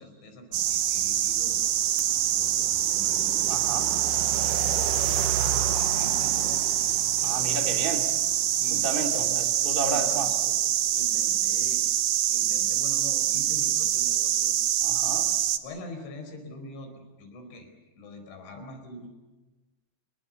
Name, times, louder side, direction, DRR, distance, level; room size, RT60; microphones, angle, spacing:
voice 1, 0.0-1.6 2.3-3.4 5.6-6.7 7.2-7.6 8.6-9.5 9.8-10.6 10.9-11.8 12.3-14.6 15.6-17.7 18.0-19.1, left 1 dB, 75° left, 6 dB, 6.9 m, -43 dB
sound 1, 0.5-15.6, right 11 dB, 90° right, 1.8 m, -25 dB
voice 2, 3.4-3.9 7.2-8.1 8.7-10.3 14.8-15.3, right 3 dB, 15° right, 2 dB, 2.5 m, -32 dB
27.5 x 22.5 x 7.1 m, 1.1 s
omnidirectional pair, 5.3 m